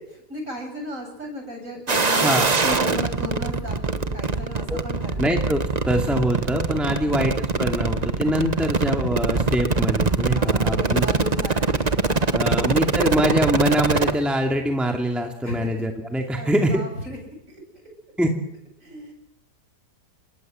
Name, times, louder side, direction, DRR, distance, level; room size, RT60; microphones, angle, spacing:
voice 1, 0.1-5.2 6.9-7.2 10.3-11.9 12.4-12.6 15.4-15.7 16.4-17.2 17.5-17.6 18.8-19.1, equal, 50° right, 3 dB, 8.4 m, -35 dB
sound 1, 1.9-14.1, right 4 dB, 25° right, 1.1 m, -23 dB
voice 2, 2.2-2.5 4.7-4.8 5.2-11.1 12.3-16.8 18.2-18.3, equal, ahead, 3 dB, 2.4 m, -24 dB
28.5 x 21.5 x 7.7 m, 0.73 s
omnidirectional pair, 1.8 m